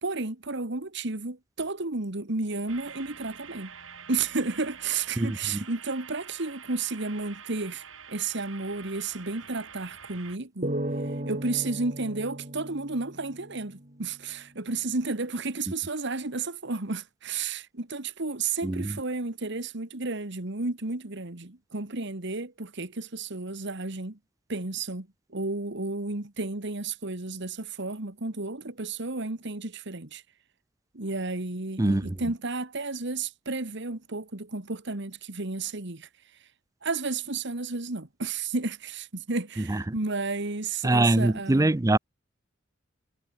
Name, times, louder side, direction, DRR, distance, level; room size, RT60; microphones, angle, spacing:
voice 1, 0.0-3.7 4.1-10.7 11.0-24.2 24.5-30.2 30.9-36.1 36.8-41.8, right 3 dB, 60° right, 2.0 m, -32 dB
sound 1, 2.7-10.4, right 7 dB, 80° right, 6.1 m, -46 dB
voice 2, 5.2-5.6 18.6-18.9 31.8-32.2 39.7-39.8 40.8-42.0, right 2 dB, 15° right, 0.5 m, -23 dB
sound 2, 10.6-14.0, right 1 dB, 40° right, 4.2 m, -35 dB
head